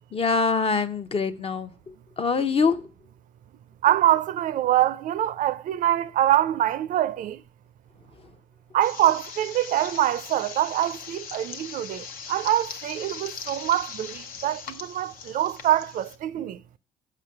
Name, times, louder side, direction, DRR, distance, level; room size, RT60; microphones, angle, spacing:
voice 1, 0.1-1.7 2.2-2.9, left 4 dB, 40° left, 0.7 m, -24 dB
voice 2, 3.8-7.4 8.7-16.6, right 12 dB, 60° right, 0.4 m, -24 dB
sound 1, 8.8-16.2, left 6 dB, 70° left, 0.8 m, -40 dB
6.7 x 5.0 x 5.6 m
supercardioid pair, 65°, 15 cm